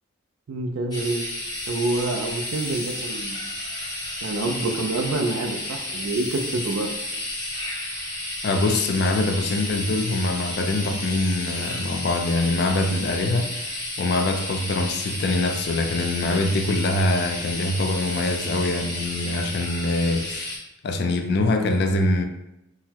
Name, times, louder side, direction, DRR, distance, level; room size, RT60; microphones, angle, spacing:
voice 1, 0.5-1.2 1.7-3.5 4.2-6.9, right 2 dB, 75° right, 3 dB, 0.4 m, -27 dB
sound 1, 0.9-20.6, left 1 dB, 20° left, 0.8 m, -32 dB
voice 2, 8.4-20.6 20.8-22.2, left 2 dB, 50° left, 6 dB, 0.3 m, -24 dB
3.7 x 2.0 x 2.8 m, 0.88 s
head